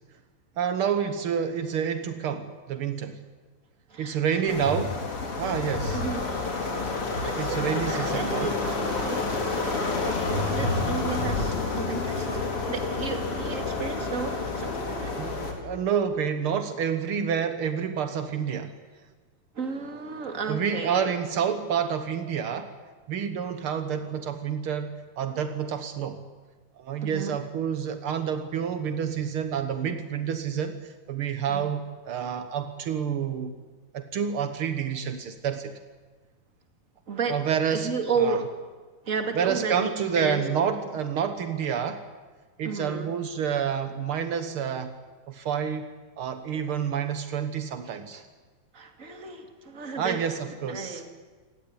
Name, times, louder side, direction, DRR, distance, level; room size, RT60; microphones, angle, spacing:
voice 1, 0.6-3.2 4.0-5.0 5.4-6.0 7.4-8.5 15.2-18.7 20.5-22.7 23.1-26.2 26.7-33.5 33.9-35.7 37.3-37.9 38.2-38.4 39.3-42.0 42.6-45.0 45.3-45.9 46.2-48.2 50.0-51.0, right 7 dB, 85° right, 9 dB, 1.2 m, -28 dB
voice 2, 3.9-4.7 5.9-6.2 7.2-9.2 9.6-15.2 19.5-21.2 27.0-27.4 31.5-31.6 37.1-37.4 37.7-38.5 39.0-39.9 40.1-40.4 42.6-43.1 46.7-46.8 48.1-48.2 48.7-50.2 50.6-51.1, right 4 dB, 25° right, 6 dB, 2.1 m, -33 dB
sound 1, 4.5-15.5, left 3 dB, 40° left, 4.3 m, -29 dB
27.5 x 18.0 x 9.9 m, 1.4 s
omnidirectional pair, 4.3 m